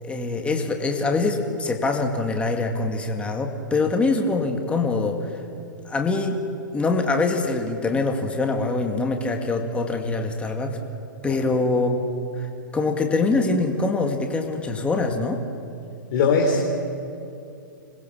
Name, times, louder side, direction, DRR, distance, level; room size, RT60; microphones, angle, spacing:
voice 1, 0.0-5.4 5.9-6.4 6.7-10.8 11.2-12.0 12.4-15.4, left 3 dB, 10° left, 3 dB, 2.1 m, -24 dB
voice 2, 16.1-16.7, left 4 dB, 50° left, 0 dB, 3.5 m, -20 dB
26.5 x 20.5 x 7.2 m, 2.6 s
hypercardioid pair, 130°, 11 cm